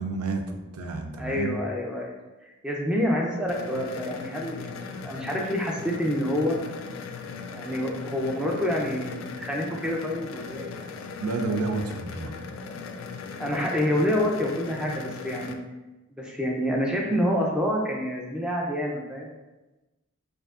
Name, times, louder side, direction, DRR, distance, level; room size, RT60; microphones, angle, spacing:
voice 1, 0.0-1.6 11.2-12.3, right 3 dB, 90° right, 4 dB, 0.5 m, -30 dB
voice 2, 1.2-2.2 2.4-4.8 5.0-6.6 7.5-10.8 13.4-15.6 16.1-19.3, equal, 5° right, -1 dB, 0.4 m, -27 dB
sound 1, 3.5-15.5, left 5 dB, 65° left, 0.3 m, -39 dB
4.5 x 2.6 x 2.4 m, 1.1 s
head